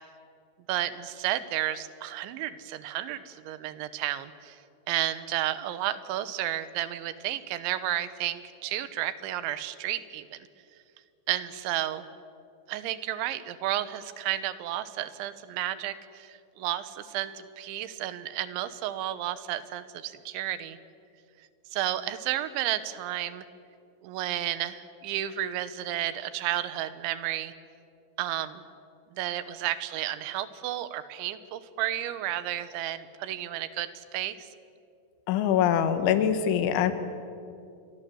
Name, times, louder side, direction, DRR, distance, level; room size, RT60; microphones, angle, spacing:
voice 1, 0.7-4.6 4.9-10.4 11.3-12.0 12.7-20.8 21.7-23.4 24.0-27.5 28.2-28.6 29.1-34.5, right 13 dB, 80° right, 13 dB, 3.3 m, -32 dB
voice 2, 35.3-36.9, left 9 dB, 80° left, 10 dB, 3.8 m, -23 dB
28.0 x 22.5 x 7.7 m, 2.5 s
omnidirectional pair, 5.4 m